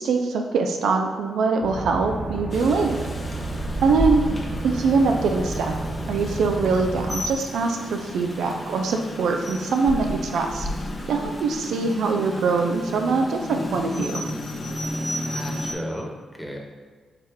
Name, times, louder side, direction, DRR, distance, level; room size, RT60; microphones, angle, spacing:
voice 1, 0.0-3.0 3.8-4.2 4.6-5.7 6.1-10.7 11.1-14.2, right 4 dB, 75° right, 4 dB, 0.3 m, -23 dB
sound 1, 1.6-7.2, right 2 dB, 15° right, 1.0 m, -31 dB
Rain, 2.5-15.7, left 1 dB, 35° left, 0.7 m, -32 dB
voice 2, 15.2-16.6, equal, 5° left, -1 dB, 1.1 m, -34 dB
4.7 x 2.9 x 3.5 m, 1.5 s
hypercardioid pair, 40°, 0 cm